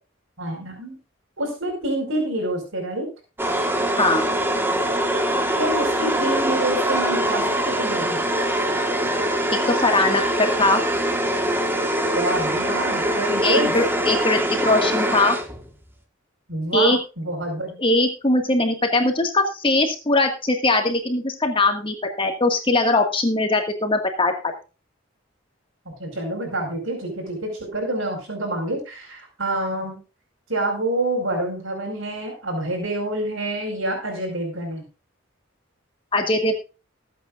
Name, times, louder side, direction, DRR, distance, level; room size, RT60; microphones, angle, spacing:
voice 1, 0.4-1.0 1.4-3.1 5.6-8.2 12.1-13.7 16.5-17.7 26.0-30.0 30.5-34.8, right 1 dB, 80° right, 2 dB, 5.0 m, -27 dB
sound 1, 3.4-15.8, right 1 dB, 10° right, 1.5 m, -23 dB
voice 2, 9.7-10.8 13.4-15.4 16.7-17.0 17.8-24.3 36.1-36.6, left 2 dB, 25° left, 4 dB, 1.8 m, -21 dB
20.5 x 8.5 x 2.5 m, 0.31 s
head